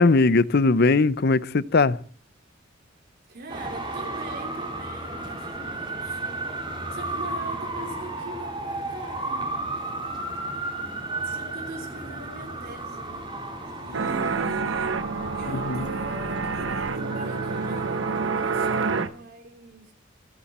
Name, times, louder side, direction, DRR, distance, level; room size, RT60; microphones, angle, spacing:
voice 1, 0.0-2.0 15.7-15.8, left 3 dB, 55° left, 0.7 m, -19 dB
voice 2, 3.3-6.2 6.9-10.0 11.1-13.3 13.6-15.0 15.3-19.9, right 2 dB, 50° right, 3.3 m, -42 dB
Traffic noise roadway noise, 3.5-19.0, right 2 dB, 25° right, 4.1 m, -34 dB
sound 1, 13.9-19.1, right 4 dB, 70° right, 0.9 m, -28 dB
29.5 x 10.0 x 4.3 m
head